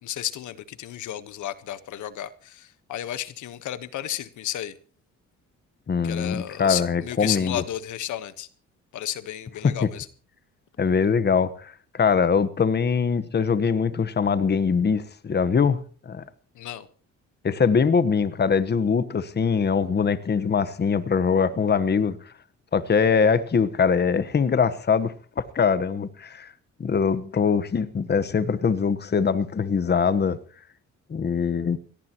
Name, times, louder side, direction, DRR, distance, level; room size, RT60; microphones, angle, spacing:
voice 1, 0.0-4.7 6.0-8.5 8.9-10.1 16.5-16.9, left 12 dB, 80° left, 1.3 m, -32 dB
voice 2, 5.9-7.6 9.6-9.9 10.8-15.8 16.1-16.2 17.4-22.2 22.7-26.5 26.8-30.4 31.1-31.8, left 6 dB, 35° left, 1.2 m, -22 dB
24.0 x 17.5 x 3.0 m
cardioid pair, 90°, 30 cm